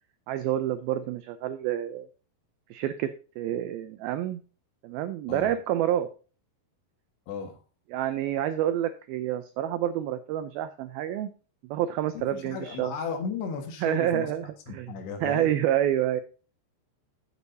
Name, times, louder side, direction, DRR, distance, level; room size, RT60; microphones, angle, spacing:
voice 1, 0.3-2.1 2.7-3.1 3.4-4.4 4.8-6.1 7.9-11.3 11.6-12.9 13.8-14.9 15.2-16.2, right 11 dB, 90° right, 10 dB, 2.1 m, -28 dB
voice 2, 12.2-14.3 14.7-15.5, left 6 dB, 75° left, 4 dB, 3.6 m, -35 dB
14.5 x 7.0 x 2.7 m, 0.36 s
omnidirectional pair, 5.0 m